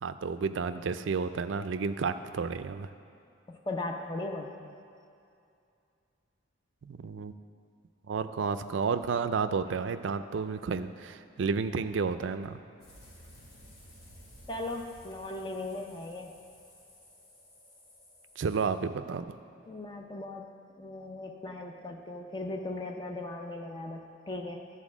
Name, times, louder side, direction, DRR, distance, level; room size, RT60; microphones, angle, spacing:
voice 1, 0.0-2.9 6.8-7.3 8.1-12.6 18.4-19.4, right 5 dB, 65° right, 11 dB, 0.4 m, -31 dB
voice 2, 3.5-4.7 14.5-16.3 19.7-24.7, left 2 dB, 20° left, 2 dB, 0.5 m, -38 dB
sound 1, 12.8-18.7, equal, 85° left, 2.2 m, -55 dB
11.5 x 4.3 x 7.2 m, 2.5 s
head